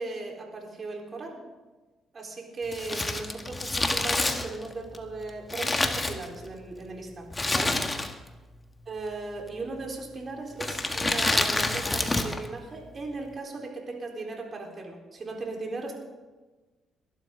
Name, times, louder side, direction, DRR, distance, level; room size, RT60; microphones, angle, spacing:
voice 1, 0.0-1.4 2.1-7.8 8.9-15.9, right 3 dB, 40° right, 0 dB, 4.2 m, -37 dB
Crumpling crinkling, 2.7-6.7 7.3-8.4 8.6-8.7 9.5-9.9 10.5-12.5 12.7-12.8, left 2 dB, 20° left, 1.7 m, -28 dB
22.0 x 12.0 x 3.9 m, 1.2 s
cardioid pair, 90°, 0 cm